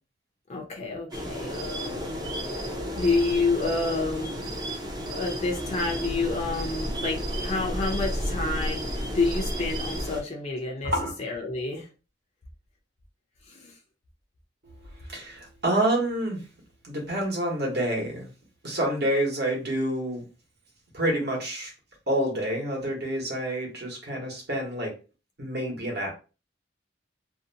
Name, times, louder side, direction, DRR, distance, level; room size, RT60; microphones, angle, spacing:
voice 1, 0.5-2.6 3.0-4.4 5.1-10.9 11.2-11.9 13.5-13.8, left 3 dB, 35° left, 0 dB, 0.5 m, -29 dB
sound 1, 1.1-10.2, equal, 20° right, 0.5 m, -32 dB
voice 2, 15.1-16.4 16.8-18.3 18.6-20.2 20.9-21.7 22.1-24.9 25.4-26.1, right 1 dB, 60° right, -2 dB, 1.1 m, -28 dB
2.7 x 2.1 x 2.6 m, 0.33 s
head